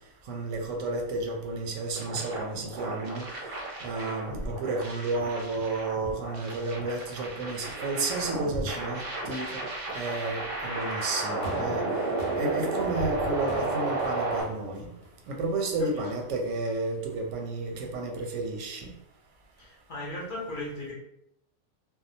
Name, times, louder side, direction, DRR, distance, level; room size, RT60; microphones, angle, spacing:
voice 1, 0.3-3.3 3.8-9.7 9.9-11.8 12.4-14.9 15.3-18.9, right 2 dB, 90° right, 2 dB, 0.9 m, -32 dB
sound 1, 1.9-14.4, right 2 dB, 50° right, 0.4 m, -33 dB
sound 2, 11.4-15.8 16.6-16.7, right 1 dB, 85° left, 1.2 m, -42 dB
voice 2, 19.6-20.9, left 1 dB, 50° left, -4 dB, 0.7 m, -37 dB
2.7 x 2.1 x 2.6 m, 0.76 s
omnidirectional pair, 1.2 m